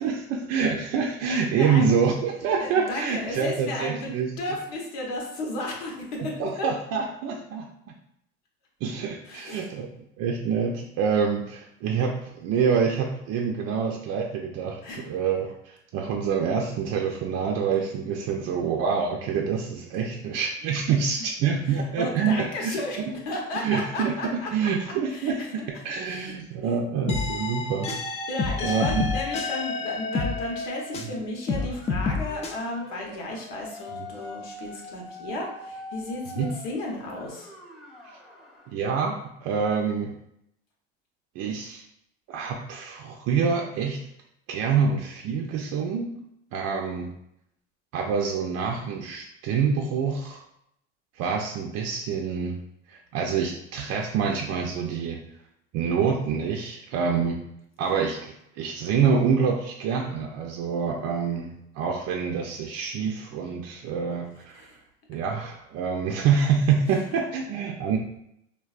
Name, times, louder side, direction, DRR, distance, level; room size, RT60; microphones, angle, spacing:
voice 1, 0.0-4.3 6.2-7.6 8.8-9.9 10.2-23.1 23.6-25.4 25.8-27.9 28.6-29.1 31.0-31.1 36.4-36.5 38.7-40.1 41.4-41.8 42.3-44.0 44.5-46.2 46.5-47.1 47.9-50.4 51.2-52.5 52.9-55.2 55.7-57.4 57.8-64.7 65.1-68.0, right 6 dB, 55° right, 0 dB, 0.5 m, -26 dB
voice 2, 1.5-1.9 2.6-6.7 9.3-9.7 14.8-15.1 21.6-24.5 25.1-25.5 26.0-26.3 26.6-26.8 28.3-37.5 64.5-64.7 67.1-67.2, left 2 dB, 80° left, 0 dB, 0.9 m, -34 dB
sound 1, 27.1-31.2 31.5-32.5, left 4 dB, 20° left, 0.3 m, -29 dB
sound 2, 31.6-38.8, left 1 dB, ahead, 0.8 m, -43 dB
3.3 x 2.2 x 2.4 m, 0.76 s
supercardioid pair, 90°, 31 cm